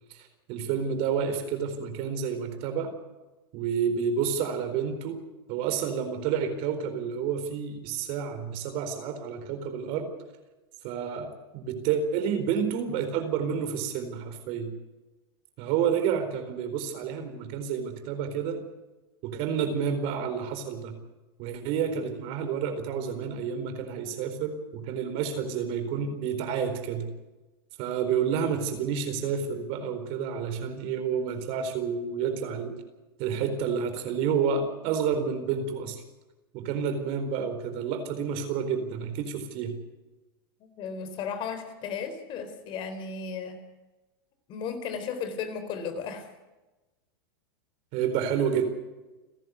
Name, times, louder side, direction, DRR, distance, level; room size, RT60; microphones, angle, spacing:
voice 1, 0.1-2.9 3.5-5.2 5.5-10.1 10.8-14.7 15.6-18.6 19.2-21.0 21.4-27.1 27.8-32.7 33.2-36.0 36.5-39.8 47.9-48.7, right 7 dB, 50° right, 8 dB, 4.2 m, -29 dB
voice 2, 40.6-43.6 44.5-46.3, left 6 dB, 40° left, 9 dB, 3.9 m, -35 dB
30.0 x 11.0 x 8.2 m, 1.1 s
hypercardioid pair, 110°, 12 cm